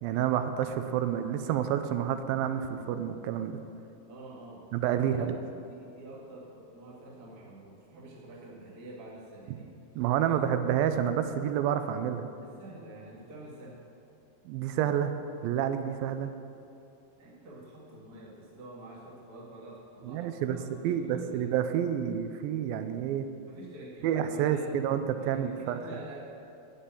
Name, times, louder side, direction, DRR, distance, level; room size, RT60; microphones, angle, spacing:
voice 1, 0.0-3.6 4.7-5.4 10.0-12.3 14.5-15.1 15.4-16.3 20.0-20.6 20.8-23.3 24.0-25.8, right 9 dB, 85° right, 9 dB, 2.3 m, -29 dB
voice 2, 4.1-4.6 5.1-5.3 5.7-9.7 12.4-13.8 17.2-21.4 23.4-26.2, right 2 dB, 35° right, -6 dB, 1.9 m, -48 dB
13.0 x 5.3 x 8.8 m, 2.7 s
omnidirectional pair, 4.3 m